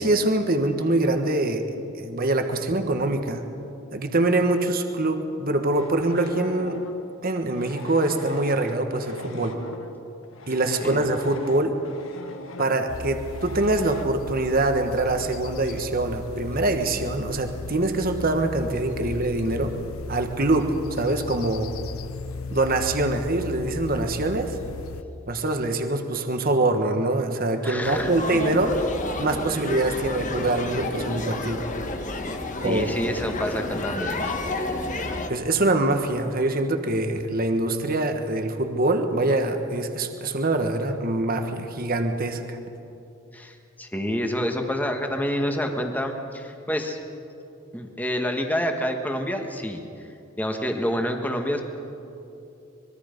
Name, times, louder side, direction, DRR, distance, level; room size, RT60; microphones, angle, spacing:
voice 1, 0.0-1.6 2.0-3.4 3.9-6.8 7.2-9.6 10.5-11.7 12.6-19.7 20.1-21.7 22.5-24.6 25.3-28.8 29.2-31.6 32.6-32.9 35.3-42.6, right 2 dB, 45° right, 6 dB, 1.4 m, -24 dB
sound 1, 5.7-14.0, left 3 dB, 75° left, 1.6 m, -42 dB
sound 2, 12.9-25.0, left 3 dB, 90° left, 0.8 m, -36 dB
voice 2, 27.6-28.1 32.6-34.3 43.3-47.0 47.7-49.8 50.4-51.6, equal, 10° left, 4 dB, 1.5 m, -28 dB
sound 3, 27.8-35.3, left 2 dB, 35° left, 1.4 m, -30 dB
25.0 x 22.0 x 5.3 m, 2.8 s
head